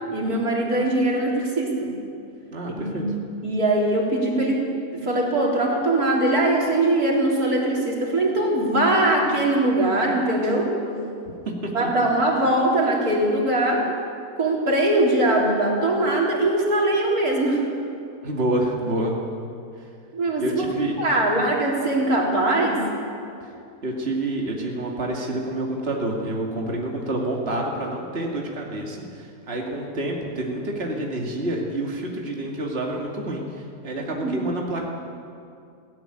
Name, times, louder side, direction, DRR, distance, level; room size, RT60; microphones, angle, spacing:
voice 1, 0.1-1.9 2.7-3.0 3.4-4.6 4.9-10.7 11.7-13.8 14.4-17.7 20.1-20.6 21.0-22.8 34.1-34.4, right 1 dB, 85° right, -2 dB, 4.2 m, -21 dB
voice 2, 2.5-3.0 11.4-11.9 18.2-19.1 20.4-20.9 23.4-23.5 23.8-34.9, right 1 dB, 40° right, -1 dB, 2.6 m, -28 dB
20.5 x 17.0 x 9.9 m, 2.5 s
omnidirectional pair, 1.5 m